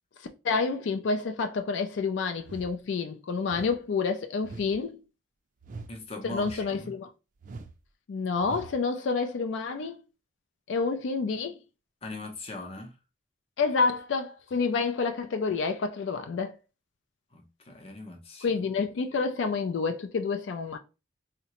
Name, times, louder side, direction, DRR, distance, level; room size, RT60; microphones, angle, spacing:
voice 1, 0.4-5.0 6.2-7.1 8.1-10.0 10.7-11.6 13.6-16.5 18.4-20.8, left 4 dB, 75° left, 0.4 m, -28 dB
sound 1, 2.4-2.8 3.5-3.8 4.4-4.8 5.6-6.0 6.3-6.8 7.4-7.8 8.4-8.8, right 3 dB, 45° right, 0.3 m, -43 dB
voice 2, 5.9-6.9 12.0-12.9 17.3-18.5, left 2 dB, 30° left, 0.6 m, -40 dB
3.7 x 2.1 x 2.9 m
head